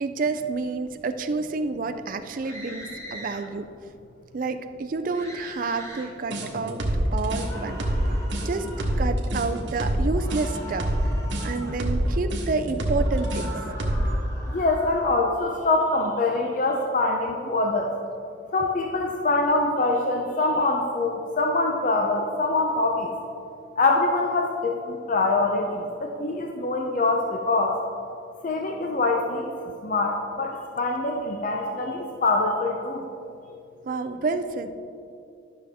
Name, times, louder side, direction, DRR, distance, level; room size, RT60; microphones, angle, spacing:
voice 1, 0.0-3.7 4.3-6.8 7.1-7.8 8.4-8.7 8.9-10.9 11.4-13.6 33.8-34.7, right 4 dB, 45° right, 8 dB, 0.4 m, -29 dB
sound 1, 2.4-3.4 5.1-6.1 7.3-8.9 10.1-11.8 12.9-15.1, equal, 15° left, 1.3 m, -41 dB
sound 2, 6.3-14.2, right 1 dB, 75° right, 1.3 m, -26 dB
voice 2, 14.5-17.9 18.5-23.1 23.8-27.8 28.4-29.5 29.8-33.0, left 2 dB, 45° left, 2 dB, 0.6 m, -24 dB
12.0 x 6.2 x 3.5 m, 2.6 s
head